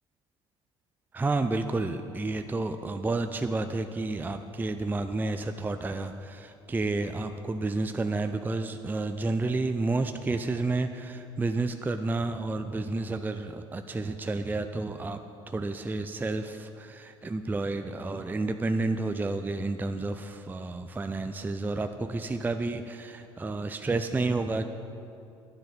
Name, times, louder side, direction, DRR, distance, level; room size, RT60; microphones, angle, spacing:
voice 1, 1.1-15.2 15.5-24.6, right 3 dB, 10° right, 8 dB, 0.5 m, -30 dB
11.5 x 10.5 x 5.6 m, 2.6 s
figure-of-eight pair, 60°, 15 cm